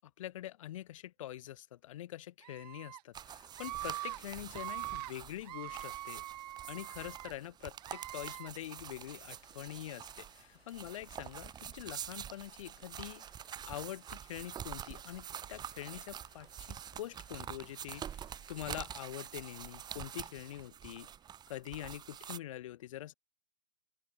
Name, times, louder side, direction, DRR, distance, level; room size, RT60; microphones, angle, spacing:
voice 1, 0.2-6.2 6.7-13.2 13.7-21.1 21.5-23.1, left 13 dB, 35° left, 0.5 m, -45 dB
Screaming, 2.4-3.0 3.5-4.2 4.5-5.1 5.4-7.3 7.8-8.5, right 14 dB, 40° right, 1.6 m, -43 dB
sound 1, 3.1-22.4, right 9 dB, 15° right, 1.6 m, -46 dB
sound 2, 8.9-20.7, left 5 dB, 75° left, 5.7 m, -67 dB
open air
figure-of-eight pair, 125°, 31 cm